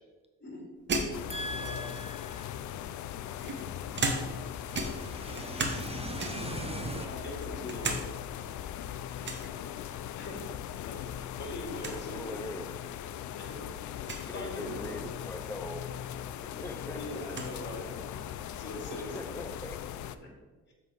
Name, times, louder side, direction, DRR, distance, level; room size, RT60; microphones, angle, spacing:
sound 1, 0.9-2.1 2.9-4.5 4.7-5.9 6.2-6.6 7.1-8.0 8.4-8.5 9.2-9.5 10.9-11.3 11.5-11.6 11.8-12.0 12.8-12.9 14.0-14.3 15.9-16.0 16.4-17.5, right 3 dB, 40° right, 1.1 m, -35 dB
sound 2, 1.1-20.2, left 10 dB, 70° left, 0.5 m, -39 dB
voice 1, 1.3-2.6 4.2-7.1, right 2 dB, 20° right, 0.4 m, -40 dB
voice 2, 6.9-8.0 9.4-9.5 10.1-10.5 10.9-11.0 11.4-12.3 13.3-13.6 14.3-15.0 16.9-17.9 18.5-19.2 20.2-20.3, left 1 dB, 35° left, 2.4 m, -41 dB
voice 3, 11.8-12.7 14.1-15.8 16.4-17.2 18.9-19.8, left 1 dB, 10° left, 0.7 m, -41 dB
7.3 x 4.0 x 5.1 m
cardioid pair, 90°, 30 cm